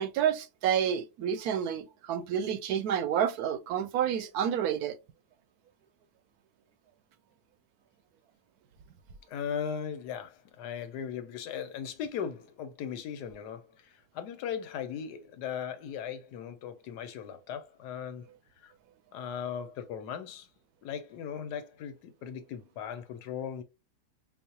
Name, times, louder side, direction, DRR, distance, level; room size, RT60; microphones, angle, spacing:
voice 1, 0.0-5.0, right 9 dB, 75° right, 1.0 m, -29 dB
voice 2, 9.3-18.3 18.6-18.7 19.1-20.5 20.8-23.6, left 8 dB, 85° left, 1.3 m, -38 dB
5.4 x 2.1 x 2.8 m
omnidirectional pair, 1.7 m